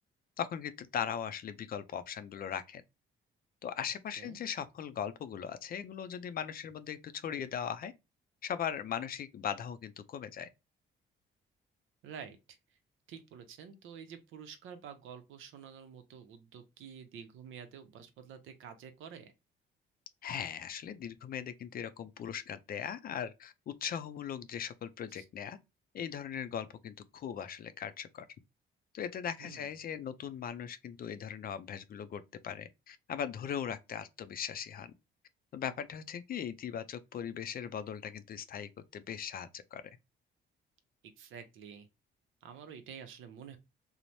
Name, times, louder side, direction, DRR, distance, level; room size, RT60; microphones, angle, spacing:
voice 1, 0.4-2.8 3.6-7.9 8.4-10.5 20.2-25.6 25.9-28.3 28.9-34.9 35.5-39.8, left 8 dB, 50° left, 0.4 m, -39 dB
voice 2, 12.0-12.6 13.1-19.3 25.1-25.2 29.4-29.8 41.2-41.9 42.4-43.6, right 7 dB, 80° right, 0.6 m, -49 dB
3.1 x 2.0 x 2.6 m
cardioid pair, 90°, 20 cm